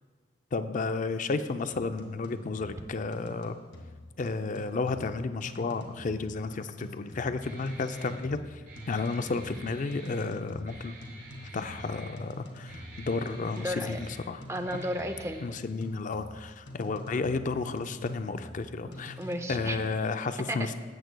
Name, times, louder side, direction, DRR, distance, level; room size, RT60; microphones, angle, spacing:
voice 1, 0.5-3.5 4.2-8.4 8.9-11.0 11.5-14.4 15.4-19.2 19.5-20.7, left 4 dB, 40° left, 10 dB, 0.4 m, -32 dB
sound 1, 1.7-19.8, left 1 dB, 85° left, 1.5 m, -47 dB
Guitar, 7.4-15.4, right 2 dB, 45° right, 2.6 m, -48 dB
voice 2, 13.6-14.0 14.5-15.5 18.8-19.8 20.5-20.7, equal, 15° right, 7 dB, 0.5 m, -34 dB
14.0 x 8.1 x 2.2 m, 1.5 s
head